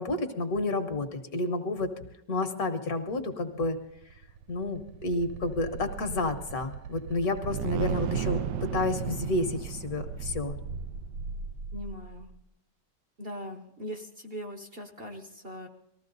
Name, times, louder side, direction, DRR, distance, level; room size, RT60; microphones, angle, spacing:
voice 1, 0.0-1.9 2.3-3.8 4.5-8.4 8.7-10.5, left 2 dB, 60° left, 8 dB, 1.6 m, -30 dB
sound 1, 3.9-12.3, right 7 dB, 80° right, 1.3 m, -35 dB
voice 2, 11.7-12.3 13.2-15.7, equal, 40° right, 5 dB, 1.1 m, -40 dB
19.5 x 14.5 x 3.9 m, 0.82 s
omnidirectional pair, 1.9 m